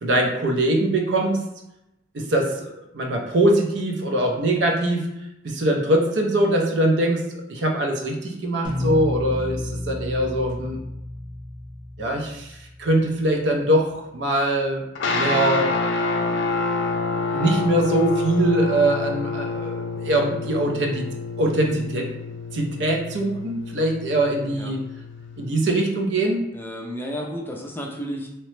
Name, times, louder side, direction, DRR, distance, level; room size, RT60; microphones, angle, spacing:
voice 1, 0.0-1.4 2.1-5.1 5.4-10.8 12.0-15.7 17.3-21.1 21.4-22.1 22.5-24.8 25.4-26.4, right 1 dB, 70° right, 1 dB, 0.5 m, -22 dB
sound 1, 8.6-13.2, left 1 dB, 25° right, 0.7 m, -31 dB
sound 2, 14.9-25.5, left 3 dB, 80° left, 0.4 m, -28 dB
voice 2, 26.5-28.3, equal, 10° left, -1 dB, 0.4 m, -32 dB
2.8 x 2.0 x 3.1 m, 0.87 s
head